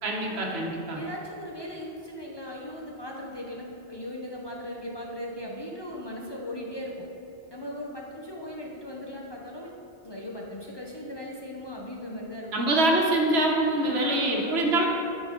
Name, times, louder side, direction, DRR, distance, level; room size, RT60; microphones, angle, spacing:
voice 1, 0.0-1.0 12.5-14.9, right 1 dB, 75° right, 0 dB, 1.2 m, -24 dB
voice 2, 0.9-7.0 7.5-9.7 10.0-12.7 13.8-14.8, left 1 dB, 30° left, -3 dB, 0.6 m, -38 dB
9.6 x 4.2 x 3.7 m, 2.8 s
omnidirectional pair, 1.1 m